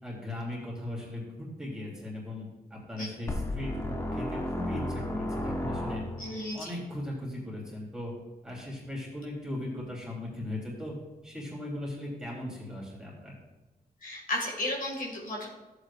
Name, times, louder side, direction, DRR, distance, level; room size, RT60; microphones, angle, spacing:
voice 1, 0.0-2.4 2.7-6.0 6.5-8.1 8.4-10.9 11.2-13.4, left 1 dB, 5° right, -5 dB, 3.4 m, -38 dB
sound 1, 3.3-6.5, left 1 dB, 15° left, 0.8 m, -33 dB
voice 2, 6.2-6.8 14.0-15.5, left 1 dB, 60° left, -2 dB, 2.1 m, -33 dB
15.0 x 8.1 x 2.5 m, 1.2 s
wide cardioid pair, 140°, 16 cm